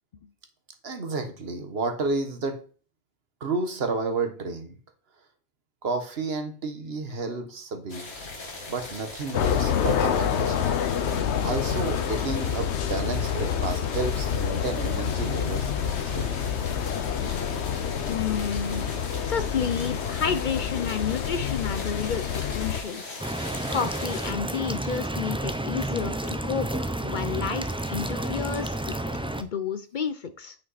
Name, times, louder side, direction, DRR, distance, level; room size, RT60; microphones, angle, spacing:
voice 1, 0.8-2.6 3.4-4.8 5.8-8.1 8.7-10.7 11.4-16.4, right 3 dB, 65° right, 7 dB, 1.4 m, -31 dB
sound 1, 7.9-24.3, left 2 dB, 70° left, 2.0 m, -41 dB
sound 2, 9.3-22.8, left 8 dB, 90° left, 1.0 m, -27 dB
voice 2, 18.1-18.8 19.3-23.2 23.7-29.0 29.4-30.6, left 6 dB, 55° left, 10 dB, 0.7 m, -30 dB
sound 3, 23.2-29.4, right 1 dB, 5° right, 0.4 m, -30 dB
8.8 x 5.5 x 4.1 m, 0.40 s
omnidirectional pair, 1.1 m